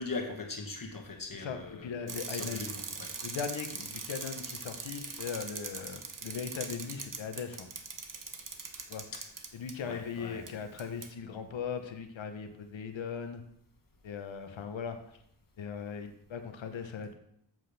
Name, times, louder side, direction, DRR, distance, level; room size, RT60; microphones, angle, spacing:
voice 1, 0.0-3.1 9.1-9.2 9.9-10.4, left 3 dB, 45° left, 3 dB, 1.7 m, -40 dB
voice 2, 1.3-2.6 3.2-7.7 8.9-9.0 9.5-13.4 14.0-15.2 15.6-17.1, left 6 dB, 85° left, 7 dB, 1.0 m, -39 dB
Bicycle, 2.1-9.7 10.5-10.6 10.8-11.1, right 4 dB, 45° right, 1.1 m, -41 dB
7.7 x 7.5 x 3.4 m, 0.70 s
cardioid pair, 50°, 45 cm